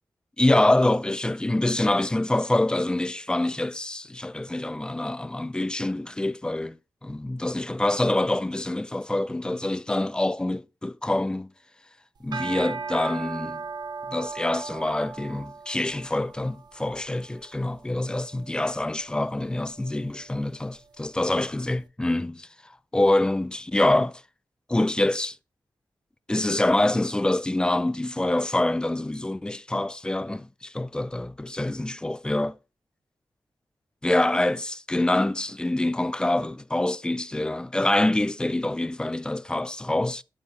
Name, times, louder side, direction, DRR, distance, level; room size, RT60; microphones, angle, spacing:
voice 1, 0.4-11.5 12.2-13.6 14.1-22.5 22.9-24.2 24.7-25.4 26.3-32.6 34.0-40.2, left 1 dB, 10° left, 0.4 m, -25 dB
sound 1, 12.2-21.5, right 4 dB, 60° right, 0.7 m, -39 dB
11.0 x 4.5 x 5.2 m
wide cardioid pair, 160°, 8 cm